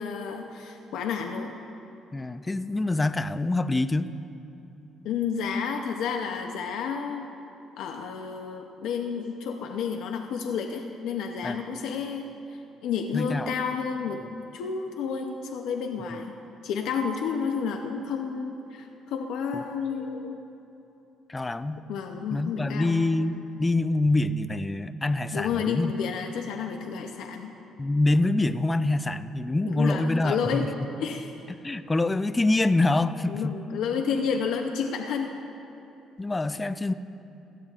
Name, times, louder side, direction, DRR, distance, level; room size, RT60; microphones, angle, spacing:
voice 1, 0.0-1.5 5.0-7.3 7.8-12.3 12.5-14.2 14.5-16.3 16.6-20.4 21.9-23.0 25.3-27.5 29.6-30.7 31.0-31.3 33.3-35.3, left 6 dB, 80° left, 3 dB, 0.6 m, -30 dB
voice 2, 2.1-4.1 11.4-11.6 13.1-13.5 19.5-19.6 21.3-21.9 22.3-25.9 27.8-30.7 31.6-33.6 36.2-36.9, left 2 dB, 20° left, 12 dB, 0.4 m, -25 dB
16.5 x 12.0 x 2.4 m, 3.0 s
cardioid pair, 95°, 0 cm